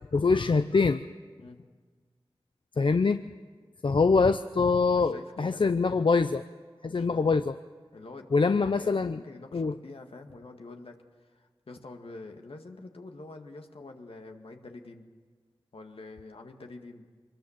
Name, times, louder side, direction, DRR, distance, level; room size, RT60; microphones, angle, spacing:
voice 1, 0.1-1.0 2.8-3.2 3.8-6.4 6.8-7.5 8.3-9.2 9.5-9.7, left 4 dB, 60° left, 10 dB, 0.6 m, -24 dB
voice 2, 4.9-5.7 6.9-7.4 7.9-15.1 15.7-17.1, left 3 dB, 75° left, 4 dB, 1.9 m, -46 dB
24.5 x 20.5 x 7.3 m, 1.5 s
cardioid pair, 45°, 10 cm